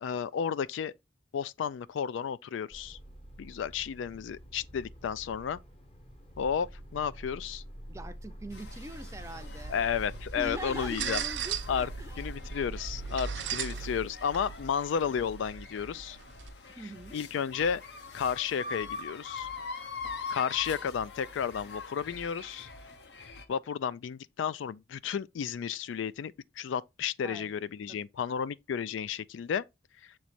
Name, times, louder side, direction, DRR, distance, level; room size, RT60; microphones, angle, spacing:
voice 1, 0.0-0.9 1.3-3.0 3.4-5.6 6.4-7.6 9.7-11.2 11.7-11.9 12.2-16.2 17.1-17.8 18.1-19.5 20.3-22.7 23.5-29.6, left 7 dB, 75° left, 0.3 m, -32 dB
sound 1, 2.7-14.0, equal, 30° left, 0.8 m, -45 dB
voice 2, 7.9-9.8 10.4-12.2 13.1-13.2 16.8-17.2 27.2-27.5 27.9-28.0 28.3-28.4, right 1 dB, 15° right, 0.5 m, -42 dB
sound 2, 8.5-23.5, left 4 dB, 60° left, 0.8 m, -44 dB
sound 3, 9.2-16.5, right 8 dB, 65° right, 0.5 m, -39 dB
7.1 x 3.1 x 4.2 m
head